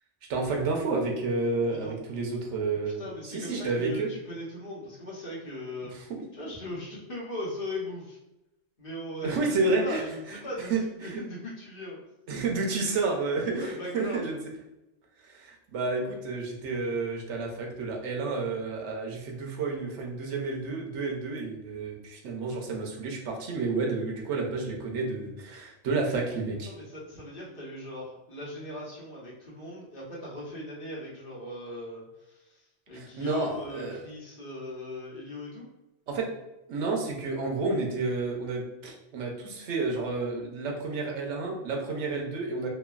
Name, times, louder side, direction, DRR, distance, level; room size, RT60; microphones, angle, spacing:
voice 1, 0.3-4.1 5.8-6.2 9.2-10.0 10.3-10.4 10.7-11.2 12.3-14.4 15.2-26.7 32.9-34.0 36.1-36.3 36.7-42.7, right 3 dB, 80° right, 0 dB, 0.9 m, -30 dB
voice 2, 3.0-5.9 6.3-8.2 8.8-9.4 9.8-12.0 13.5-14.3 26.7-32.6 32.9-35.6, left 1 dB, 50° left, -6 dB, 1.1 m, -39 dB
3.0 x 2.2 x 2.3 m, 0.95 s
omnidirectional pair, 1.2 m